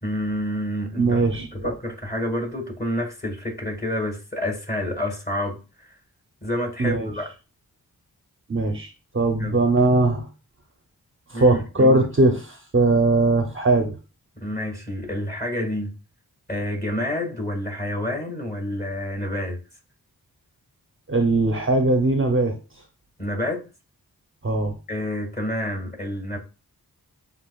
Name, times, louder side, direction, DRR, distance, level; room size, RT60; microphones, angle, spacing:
voice 1, 0.0-5.9 6.4-7.3 9.4-9.6 11.3-12.1 14.4-15.9 16.5-19.6 23.2-23.6 24.9-26.4, left 1 dB, 25° left, 2.1 m, -28 dB
voice 2, 1.0-1.7 6.8-7.1 8.5-8.9 9.1-10.3 11.3-13.9 21.1-22.6 24.4-24.7, right 2 dB, 35° right, 0.7 m, -20 dB
7.6 x 2.5 x 2.4 m
cardioid pair, 50°, 38 cm